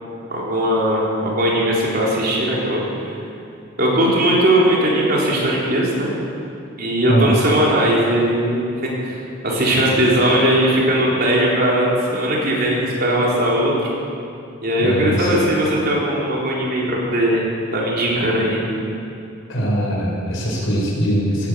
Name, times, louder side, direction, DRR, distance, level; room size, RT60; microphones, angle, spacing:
voice 1, 0.3-3.1 3.8-6.1 6.8-9.2 9.4-13.9 14.6-17.4 17.7-18.6, right 1 dB, 50° right, -4 dB, 4.0 m, -19 dB
voice 2, 7.0-7.5 14.8-15.3 19.5-21.5, equal, 80° left, -3 dB, 4.9 m, -21 dB
17.0 x 10.0 x 8.1 m, 2.6 s
head